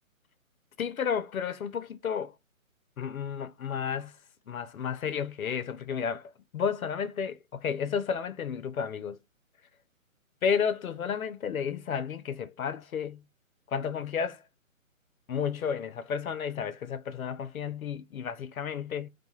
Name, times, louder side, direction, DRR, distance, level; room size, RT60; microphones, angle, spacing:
voice 1, 0.8-2.3 3.0-4.1 4.5-6.2 6.5-9.2 10.4-13.2 13.7-14.4 15.3-19.1, left 7 dB, 80° left, 0.5 m, -32 dB
2.3 x 2.1 x 2.8 m
figure-of-eight pair, 140°, 41 cm